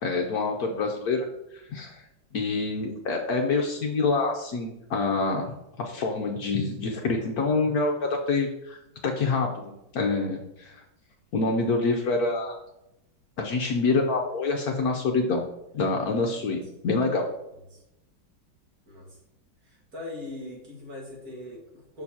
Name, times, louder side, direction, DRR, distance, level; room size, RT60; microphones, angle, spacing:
voice 1, 0.0-1.3 1.5-2.0 2.3-7.9 8.3-8.8 9.0-9.5 9.9-10.8 11.3-12.6 13.4-15.4 15.7-17.3, left 3 dB, 65° left, 2 dB, 1.0 m, -26 dB
voice 2, 18.9-19.2 19.6-22.0, left 2 dB, 55° right, -2 dB, 2.2 m, -41 dB
6.6 x 6.5 x 2.8 m, 0.86 s
omnidirectional pair, 2.0 m